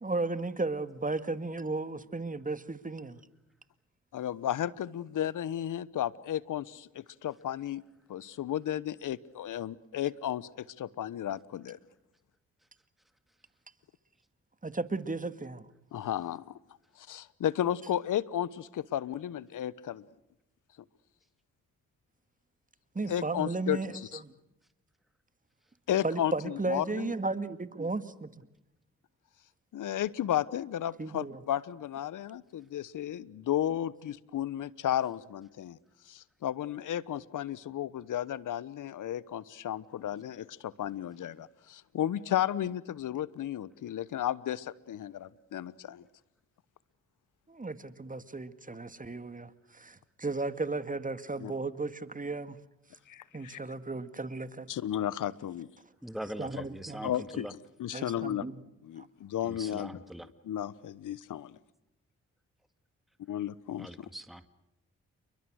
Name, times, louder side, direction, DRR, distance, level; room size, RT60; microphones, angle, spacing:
voice 1, 0.0-3.2 14.6-15.7 22.9-23.9 24.2-24.3 26.0-28.4 31.0-31.4 47.5-52.6 53.3-54.7 56.4-57.1 57.9-58.6, right 3 dB, 25° right, 12 dB, 2.2 m, -35 dB
voice 2, 4.1-7.8 8.1-11.8 15.9-16.4 17.0-20.0 23.1-24.2 25.9-27.1 29.7-35.8 36.1-46.0 51.4-51.5 53.1-53.6 54.7-55.7 57.0-58.4 58.8-59.0 59.3-59.9 60.4-61.5 63.3-64.1, left 11 dB, 70° left, 20 dB, 1.1 m, -33 dB
voice 3, 56.0-57.5 59.4-60.3 63.8-64.5, right 1 dB, ahead, 10 dB, 2.0 m, -42 dB
29.5 x 23.5 x 6.5 m, 0.90 s
supercardioid pair, 45°, 32 cm